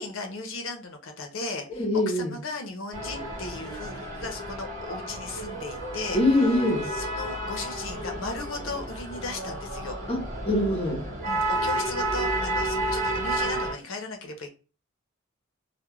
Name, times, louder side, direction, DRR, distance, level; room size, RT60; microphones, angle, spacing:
voice 1, 0.0-6.2 6.9-10.0 11.3-14.5, left 3 dB, 70° left, 0.6 m, -36 dB
voice 2, 1.8-2.3 6.1-6.9 10.1-11.0, left 1 dB, 30° left, 0.7 m, -24 dB
sound 1, 2.9-13.7, right 1 dB, 45° right, 1.2 m, -31 dB
2.3 x 2.1 x 3.0 m
head